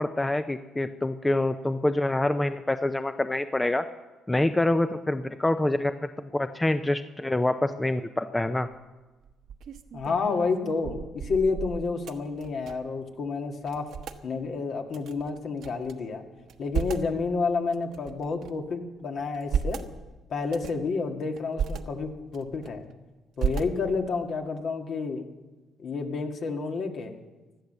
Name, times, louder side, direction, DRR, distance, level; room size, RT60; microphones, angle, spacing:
voice 1, 0.0-3.8 4.3-8.7, left 1 dB, 15° left, 10 dB, 0.6 m, -26 dB
sound 1, 8.4-8.7 9.2-13.0 13.3-13.4 13.6-14.2 14.9-15.9 16.4-17.1 17.7-18.7 19.2-19.9 20.4-20.9 21.4-21.8 22.3-22.9 23.4-24.1, right 7 dB, 70° right, 1.1 m, -34 dB
voice 2, 9.9-13.9 14.2-16.2 16.6-19.8 20.3-22.9 23.4-25.2 25.8-27.1, left 4 dB, 60° left, 3 dB, 2.0 m, -30 dB
16.5 x 12.0 x 6.8 m, 1.2 s
cardioid pair, 85°, 0 cm